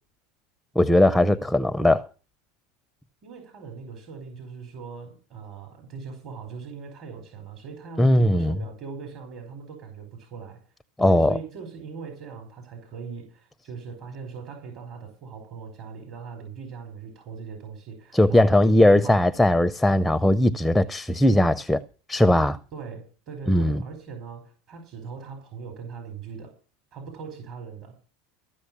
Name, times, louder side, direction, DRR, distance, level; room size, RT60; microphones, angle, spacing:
voice 1, 0.8-2.1 8.0-8.6 11.0-11.4 18.1-21.8 22.1-22.6 23.5-23.8, left 1 dB, 5° left, 0.6 m, -19 dB
voice 2, 3.2-10.6 11.0-19.2 22.7-26.5 26.9-27.9, right 5 dB, 50° right, 4.7 m, -40 dB
14.5 x 6.4 x 8.6 m
hypercardioid pair, 95°, 0 cm